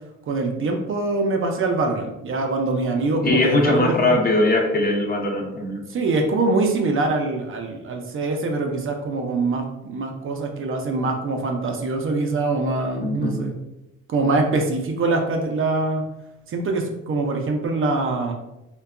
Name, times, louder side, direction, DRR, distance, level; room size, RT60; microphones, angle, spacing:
voice 1, 0.3-4.2 5.9-13.6 14.1-16.0 16.5-18.3, right 3 dB, 45° right, 2 dB, 0.4 m, -24 dB
voice 2, 3.2-5.8 13.0-13.5, left 2 dB, 30° left, 1 dB, 0.5 m, -20 dB
2.6 x 2.2 x 2.4 m, 0.94 s
cardioid pair, 90°, 30 cm